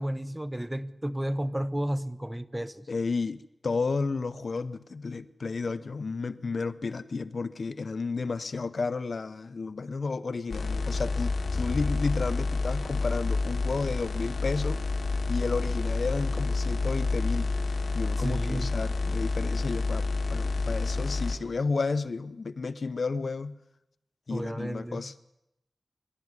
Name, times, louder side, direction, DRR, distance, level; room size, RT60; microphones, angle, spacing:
voice 1, 0.0-2.9 18.2-18.7 24.3-25.1, right 1 dB, 15° right, 13 dB, 1.1 m, -32 dB
voice 2, 2.9-14.8 15.3-17.5 17.9-23.6 24.3-25.1, left 4 dB, 70° left, 15 dB, 0.8 m, -32 dB
sound 1, 10.5-21.3, left 3 dB, 90° left, 1.9 m, -29 dB
24.0 x 12.0 x 9.7 m, 0.87 s
wide cardioid pair, 65°, 0 cm